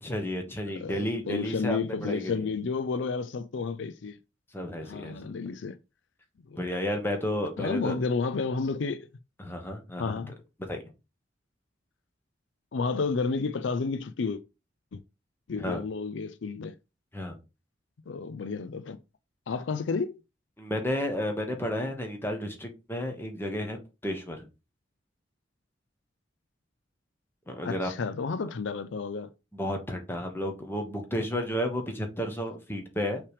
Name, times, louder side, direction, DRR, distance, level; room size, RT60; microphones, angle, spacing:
voice 1, 0.0-2.5 4.5-5.2 6.5-8.0 9.4-10.1 10.7-10.8 15.6-15.8 17.1-17.4 20.6-23.8 24.0-24.5 27.5-27.9 29.5-33.2, equal, 10° left, 1.2 m, -32 dB
voice 2, 0.7-4.2 4.8-5.8 6.5-6.6 7.6-9.1 10.0-10.3 12.7-14.4 14.9-15.0 15.5-16.7 18.1-19.0 19.5-20.2 27.7-29.3, left 4 dB, 75° left, 0.5 m, -31 dB
5.7 x 3.3 x 4.9 m
head